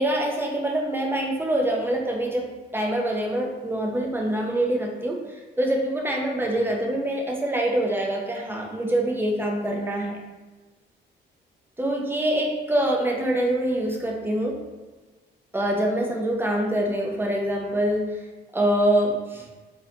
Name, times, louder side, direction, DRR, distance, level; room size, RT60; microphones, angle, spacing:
voice 1, 0.0-2.5 2.7-5.2 5.6-10.2 11.8-14.5 15.5-18.0 18.5-19.4, right 1 dB, 10° right, 0 dB, 0.6 m, -25 dB
3.8 x 2.7 x 2.8 m, 1.3 s
cardioid pair, 90°, 20 cm